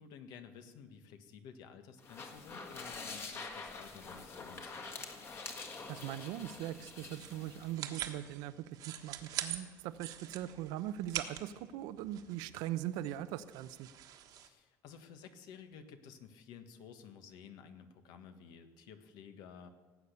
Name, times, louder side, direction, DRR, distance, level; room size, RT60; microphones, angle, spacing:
voice 1, 0.0-5.2 14.3-19.7, left 7 dB, 75° left, 8 dB, 1.5 m, -53 dB
sound 1, 2.0-7.8, left 4 dB, 35° left, 1.8 m, -46 dB
sound 2, 5.6-14.5, right 11 dB, 65° right, 1.3 m, -45 dB
voice 2, 5.9-8.8 9.0-13.9, right 12 dB, 90° right, 13 dB, 0.7 m, -40 dB
17.5 x 8.4 x 6.8 m, 1.4 s
cardioid pair, 135°, 7 cm